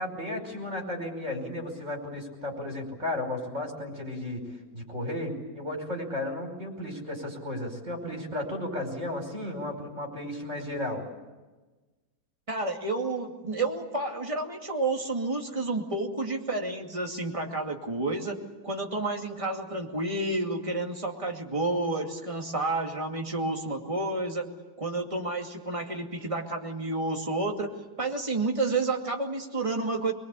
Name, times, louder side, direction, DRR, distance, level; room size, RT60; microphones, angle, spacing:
voice 1, 0.0-11.0, left 1 dB, 35° right, 2 dB, 5.6 m, -34 dB
voice 2, 12.5-24.5 24.8-30.1, right 2 dB, 15° right, 1 dB, 2.4 m, -30 dB
24.0 x 22.0 x 8.4 m, 1.2 s
omnidirectional pair, 2.1 m